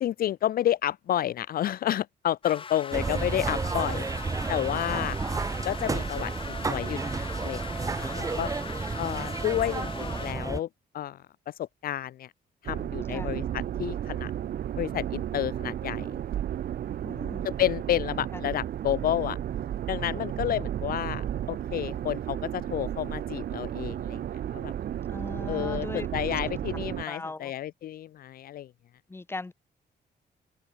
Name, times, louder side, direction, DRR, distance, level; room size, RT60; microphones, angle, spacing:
voice 1, 0.0-5.2 5.6-8.5 9.0-10.7 10.9-12.3 12.6-14.3 14.8-16.1 17.4-19.4 19.9-24.2 24.5-24.7 25.5-28.7, left 12 dB, 55° left, 0.6 m, -30 dB
sound 1, 2.4-10.3, left 6 dB, 30° left, 2.4 m, -41 dB
sound 2, 2.9-10.6, right 4 dB, 20° right, 1.0 m, -31 dB
sound 3, 12.6-27.0, right 10 dB, 60° right, 1.9 m, -33 dB
voice 2, 13.1-13.4 17.0-17.5 18.3-18.4 25.1-26.1 27.1-27.5 29.1-29.5, left 3 dB, 15° left, 1.6 m, -39 dB
cardioid pair, 165°, 18 cm